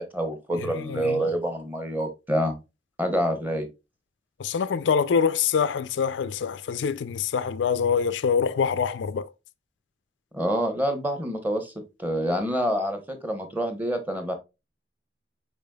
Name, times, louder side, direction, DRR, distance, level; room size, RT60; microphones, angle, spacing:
voice 1, 0.0-2.6 3.0-3.7 10.3-11.7 12.0-14.3, equal, 10° right, 0.9 m, -27 dB
voice 2, 0.6-1.3 4.4-9.3, left 6 dB, 85° left, 0.4 m, -25 dB
5.0 x 4.6 x 2.2 m
head